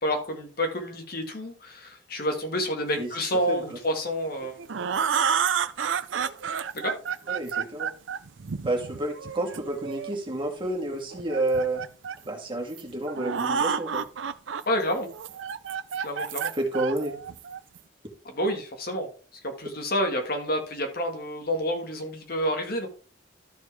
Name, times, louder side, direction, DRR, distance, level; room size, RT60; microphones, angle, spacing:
voice 1, 0.0-4.7 6.7-6.9 14.7-15.1 16.0-16.5 18.4-22.9, equal, 55° left, 4 dB, 1.8 m, -29 dB
voice 2, 3.5-3.8 7.3-7.9 8.6-11.8 12.3-14.1 16.5-17.1, right 2 dB, 25° right, 1 dB, 2.2 m, -30 dB
sound 1, 4.2-10.1 11.1-12.3 12.8-12.9 13.1-14.6 15.0-17.8, right 7 dB, 90° right, 0.6 m, -30 dB
13.0 x 4.6 x 3.3 m, 0.39 s
head